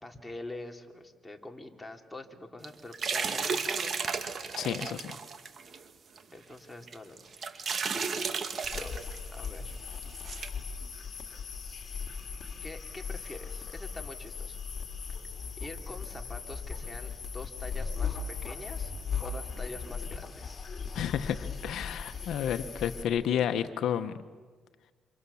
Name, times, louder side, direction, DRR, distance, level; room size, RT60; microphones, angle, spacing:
voice 1, 0.0-3.9 6.3-7.3 8.7-8.9 9.3-9.7 12.6-14.6 15.6-20.6, left 2 dB, 10° left, 2 dB, 3.1 m, -45 dB
sound 1, 2.6-5.8 6.2-6.3 6.9-9.2 9.4-9.5 10.0-10.5, right 5 dB, 50° right, 2.2 m, -33 dB
voice 2, 4.6-5.2 20.9-24.2, left 9 dB, 75° left, 10 dB, 1.1 m, -31 dB
sound 2, 8.6-23.0, left 5 dB, 40° left, 3.5 m, -38 dB
28.5 x 27.0 x 7.2 m, 1.4 s
cardioid pair, 90°, 0 cm